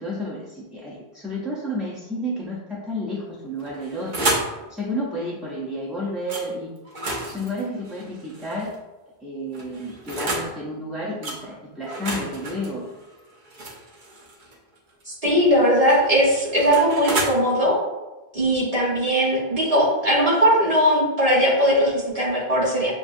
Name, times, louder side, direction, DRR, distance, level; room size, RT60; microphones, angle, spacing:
voice 1, 0.0-4.4 4.7-6.7 7.2-8.8 9.2-12.9, equal, ahead, -7 dB, 0.4 m, -31 dB
sound 1, 3.6-4.6 6.3-6.5 6.9-8.8 9.5-10.5 11.2-11.4 11.9-14.6 15.7-17.3, right 1 dB, 55° right, 0.9 m, -30 dB
voice 2, 15.1-17.8 18.3-22.9, equal, 35° right, -5 dB, 1.3 m, -19 dB
6.5 x 2.6 x 2.6 m, 1.1 s
omnidirectional pair, 1.0 m